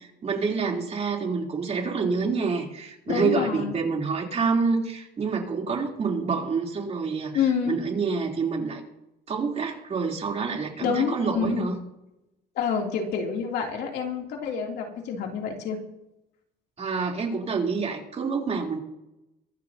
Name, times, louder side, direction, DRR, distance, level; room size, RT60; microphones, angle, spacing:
voice 1, 0.0-8.8 9.3-11.8 16.8-18.8, right 5 dB, 40° right, 0 dB, 3.5 m, -27 dB
voice 2, 3.1-3.8 7.3-7.8 10.8-11.7 12.5-15.8, left 7 dB, 75° left, 1 dB, 3.0 m, -28 dB
23.5 x 12.5 x 2.9 m, 0.92 s
cardioid pair, 110°, 17 cm